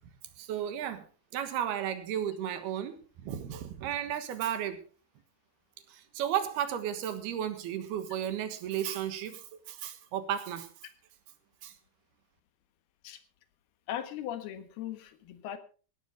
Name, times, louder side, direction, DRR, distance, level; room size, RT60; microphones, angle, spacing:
voice 1, 0.4-1.0 1.3-4.8 5.9-10.7 11.6-11.7, right 10 dB, 80° right, 10 dB, 3.4 m, -34 dB
voice 2, 13.9-15.6, left 11 dB, 80° left, 11 dB, 3.3 m, -38 dB
17.0 x 12.0 x 4.5 m, 0.38 s
omnidirectional pair, 4.5 m